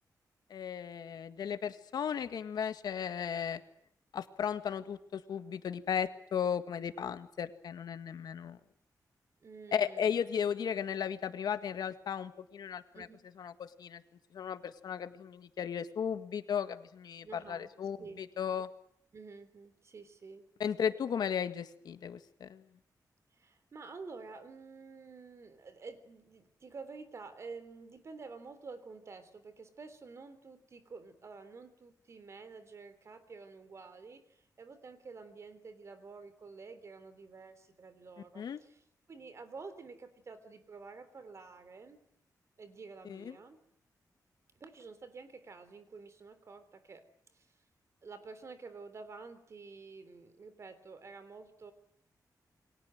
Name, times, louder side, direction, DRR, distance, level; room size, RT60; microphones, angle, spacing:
voice 1, 0.5-3.6 4.1-8.6 9.7-13.1 13.4-14.0 14.3-18.7 20.6-22.6 38.4-38.6 43.1-43.4, left 8 dB, 80° left, 10 dB, 1.9 m, -35 dB
voice 2, 9.4-10.2 12.9-13.3 17.2-17.7 18.0-18.2 19.1-20.5 23.3-42.0 42.6-43.6 44.6-47.0 47.3-47.5 48.0-51.7, right 4 dB, 45° right, 12 dB, 3.4 m, -50 dB
29.0 x 23.5 x 7.8 m, 0.69 s
wide cardioid pair, 155°, 7 cm